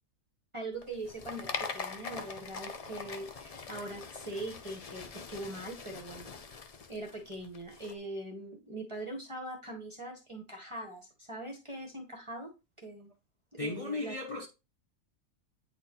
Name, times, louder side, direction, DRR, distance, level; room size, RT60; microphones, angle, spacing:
voice 1, 0.5-6.6 6.9-12.5 12.8-13.1 13.5-14.1, right 1 dB, 25° right, 0.9 m, -42 dB
sound 1, 0.8-7.9, left 5 dB, 60° left, 0.3 m, -43 dB
voice 2, 13.6-14.5, left 2 dB, 30° left, 0.8 m, -35 dB
8.9 x 4.1 x 2.8 m
omnidirectional pair, 1.4 m